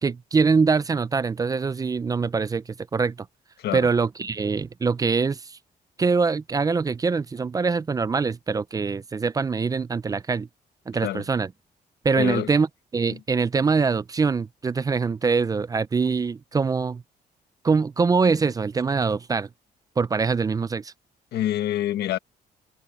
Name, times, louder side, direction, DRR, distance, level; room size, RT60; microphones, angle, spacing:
voice 1, 0.0-2.6 2.9-3.2 3.7-5.6 6.0-10.5 10.9-11.5 12.0-12.7 12.9-17.0 17.6-19.5 20.0-20.9, right 4 dB, 20° right, 0.4 m, -23 dB
voice 2, 3.6-3.9 11.0-11.3 12.2-12.5 13.1-13.2 21.3-22.2, left 12 dB, 85° left, 1.2 m, -26 dB
cardioid pair, 145°, 17 cm